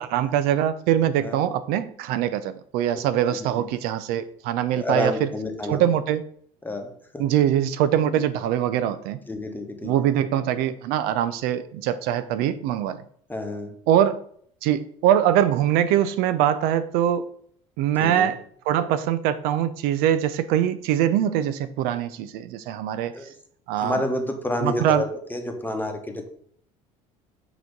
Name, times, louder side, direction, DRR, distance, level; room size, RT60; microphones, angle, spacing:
voice 1, 0.0-5.3 5.7-6.2 7.2-9.2 9.8-13.0 13.9-14.2 14.6-17.3 17.8-18.4 18.7-23.1 23.7-24.0 24.6-25.0, right 10 dB, 70° right, 12 dB, 0.4 m, -23 dB
voice 2, 1.2-1.6 3.3-3.7 4.7-5.9 6.6-7.3 9.3-10.1 13.3-13.8 18.0-18.3 23.1-23.3 23.8-26.3, left 1 dB, 10° left, 5 dB, 1.1 m, -30 dB
6.0 x 3.0 x 5.2 m, 0.62 s
supercardioid pair, 85°, 16 cm